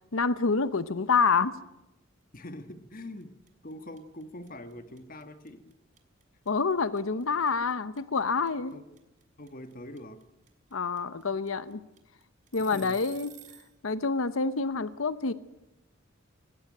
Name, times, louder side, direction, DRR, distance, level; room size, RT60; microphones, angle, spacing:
voice 1, 0.1-1.6 6.5-8.7 10.7-11.8 12.5-13.3 13.8-15.3, left 4 dB, 90° left, 14 dB, 0.9 m, -27 dB
voice 2, 2.3-3.4 3.6-5.8 8.7-8.9 9.4-10.2 12.6-13.0, left 1 dB, 45° left, 10 dB, 1.4 m, -44 dB
sound 1, 2.5-2.7 3.0-13.7, right 12 dB, 40° right, 2.4 m, -52 dB
19.0 x 17.0 x 9.1 m, 0.91 s
head